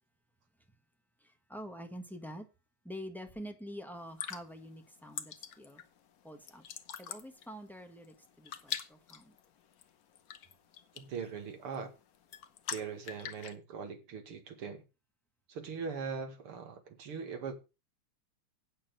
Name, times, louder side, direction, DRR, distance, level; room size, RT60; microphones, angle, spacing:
voice 1, 1.2-2.5 2.8-5.8 6.2-6.6 7.0-9.3, equal, ahead, 1.1 m, -46 dB
sound 1, 4.0-13.6, left 8 dB, 55° left, 1.1 m, -45 dB
voice 2, 10.9-11.9 12.7-14.8 15.5-17.5, right 6 dB, 85° right, 2.8 m, -41 dB
8.8 x 7.4 x 6.2 m
omnidirectional pair, 2.4 m